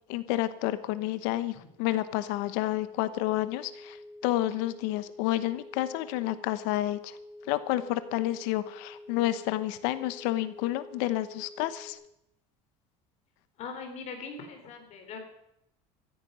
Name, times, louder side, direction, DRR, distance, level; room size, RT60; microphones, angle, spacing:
voice 1, 0.1-4.0 4.2-7.2 7.5-12.0, left 15 dB, 80° left, 14 dB, 1.0 m, -30 dB
sound 1, 3.3-11.9, left 1 dB, 30° left, 2.1 m, -48 dB
voice 2, 13.6-15.2, left 5 dB, 45° left, 5 dB, 3.6 m, -41 dB
14.5 x 14.0 x 5.5 m, 0.79 s
cardioid pair, 150°, 15 cm